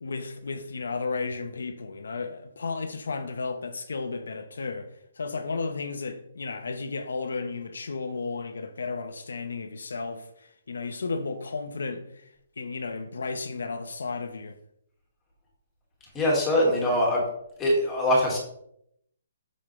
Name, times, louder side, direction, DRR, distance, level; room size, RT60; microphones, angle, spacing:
voice 1, 0.0-4.9 5.2-12.0 12.6-14.6, left 4 dB, 90° left, 1.1 m, -33 dB
voice 2, 16.1-17.2 17.6-18.4, equal, 10° left, 2.2 m, -22 dB
7.3 x 6.8 x 3.4 m
hypercardioid pair, 170°, 0 cm